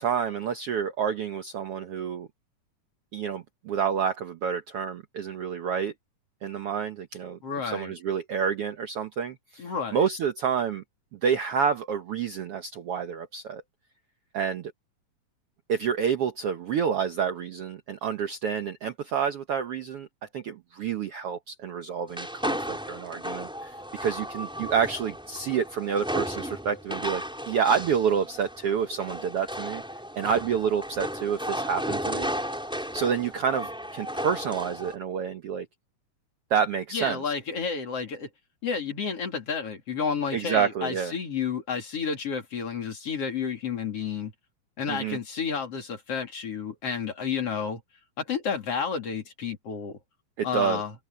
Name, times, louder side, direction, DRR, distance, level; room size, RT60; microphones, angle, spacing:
voice 1, 0.0-2.3 3.1-5.9 6.4-10.8 11.2-13.6 14.3-14.7 15.7-20.1 20.3-23.7 24.0-29.8 30.1-32.3 32.9-35.7 36.5-37.2 40.3-41.1 44.9-45.2 50.4-50.8, right 7 dB, 65° right, 1.5 m, -28 dB
voice 2, 7.4-7.9 9.6-10.0 36.9-38.3 38.6-44.3 44.8-47.8 48.2-50.0 50.4-50.9, left 6 dB, 45° left, 3.7 m, -31 dB
sound 1, 22.1-35.0, equal, ahead, 4.4 m, -34 dB
omnidirectional pair, 3.8 m